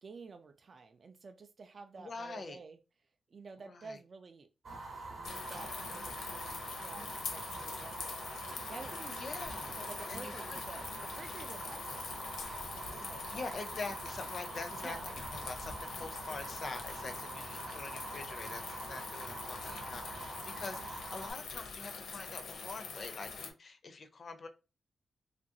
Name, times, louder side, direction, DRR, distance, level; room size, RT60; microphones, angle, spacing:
voice 1, 0.0-2.8 3.3-4.5 5.2-9.2 9.5-12.5 12.8-13.6 14.7-15.1 17.2-17.5, right 4 dB, 40° right, 0.3 m, -51 dB
voice 2, 2.0-2.6 3.7-4.0 9.2-9.8 10.1-10.3 13.3-24.5, left 3 dB, 45° left, 0.4 m, -45 dB
Fire, 4.6-21.3, right 2 dB, 55° right, 0.7 m, -45 dB
sound 1, 5.2-23.5, left 4 dB, 85° left, 0.6 m, -44 dB
3.0 x 2.5 x 2.7 m
wide cardioid pair, 145°, 0 cm